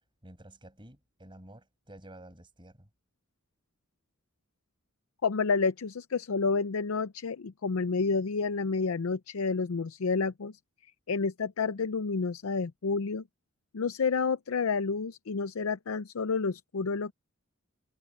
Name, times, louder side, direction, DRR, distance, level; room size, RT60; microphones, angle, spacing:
voice 1, 0.2-2.9, right 1 dB, 25° right, 6.3 m, -51 dB
voice 2, 5.2-10.5 11.1-13.2 13.7-17.1, left 4 dB, 90° left, 0.6 m, -29 dB
head